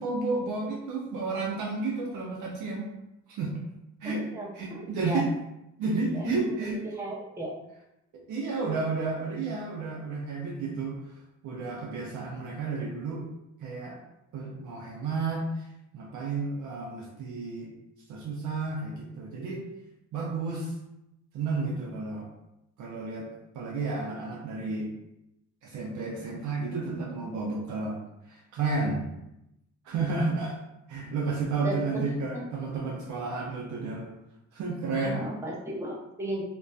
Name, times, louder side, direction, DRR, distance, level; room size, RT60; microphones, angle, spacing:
voice 1, 0.0-2.9 3.3-3.6 4.0-4.3 4.5-5.2 5.8-6.8 8.1-11.0 11.4-13.2 13.6-14.0 14.3-15.6 15.9-17.7 18.1-19.6 20.1-20.8 21.3-22.3 22.8-23.3 23.5-24.9 25.6-28.0 28.3-29.1 29.9-30.6 30.9-34.1 34.5-35.2, right 3 dB, 75° right, -2 dB, 0.5 m, -31 dB
voice 2, 4.0-5.2 6.1-7.5 31.6-32.1 35.0-36.4, right 1 dB, 10° right, -4 dB, 0.7 m, -35 dB
2.5 x 2.2 x 2.2 m, 0.87 s
cardioid pair, 90°, 30 cm